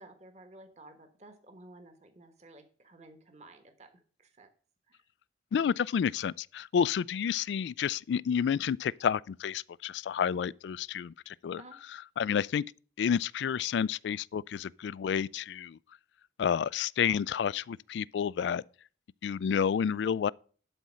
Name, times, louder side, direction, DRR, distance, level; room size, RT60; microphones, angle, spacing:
voice 1, 0.0-4.5 4.9-5.0 11.6-11.8 18.4-18.6 19.5-19.6, right 2 dB, 40° right, 1.3 m, -53 dB
voice 2, 5.5-11.6 12.2-12.6 13.0-15.8 16.4-18.6 19.2-20.3, left 7 dB, 80° left, 0.3 m, -30 dB
11.5 x 4.2 x 6.2 m
head